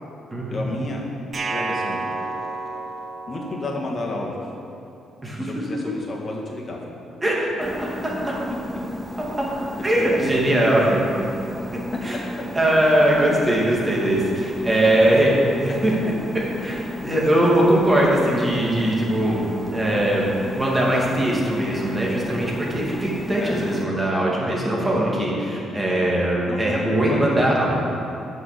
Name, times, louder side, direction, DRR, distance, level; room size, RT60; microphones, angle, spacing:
voice 1, 0.5-1.1 1.4-2.0 3.3-4.4 5.4-6.8 9.9-10.3 14.8-15.1 17.0-17.5 23.4-23.6 26.5-27.2, left 2 dB, 40° left, -1 dB, 1.7 m, -31 dB
sound 1, 1.3-4.4, right 3 dB, 45° right, 0.6 m, -30 dB
voice 2, 7.2-8.3 9.8-11.0 11.7-12.2 12.5-15.3 15.6-15.9 16.3-19.4 19.7-27.8, right 1 dB, 20° right, -4 dB, 2.3 m, -21 dB
sound 2, 7.6-23.9, equal, ahead, 0.5 m, -34 dB
8.0 x 5.7 x 6.8 m, 2.7 s
cardioid pair, 90°, 0 cm